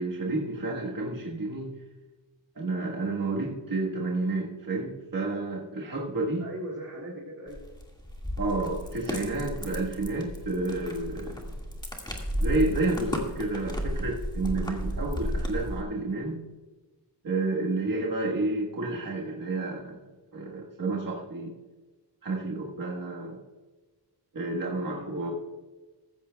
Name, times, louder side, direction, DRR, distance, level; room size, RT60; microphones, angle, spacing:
voice 1, 0.0-1.7 2.5-6.4 8.4-11.5 12.4-16.4 17.2-20.0 20.3-21.6 22.2-23.4 24.3-25.3, right 2 dB, 50° right, -3 dB, 1.5 m, -30 dB
voice 2, 6.4-7.6 24.6-25.3, equal, 30° right, -4 dB, 2.6 m, -39 dB
sound 1, 7.5-15.8, equal, 10° left, 1.8 m, -33 dB
15.0 x 14.0 x 2.3 m, 1.2 s
wide cardioid pair, 145°, 44 cm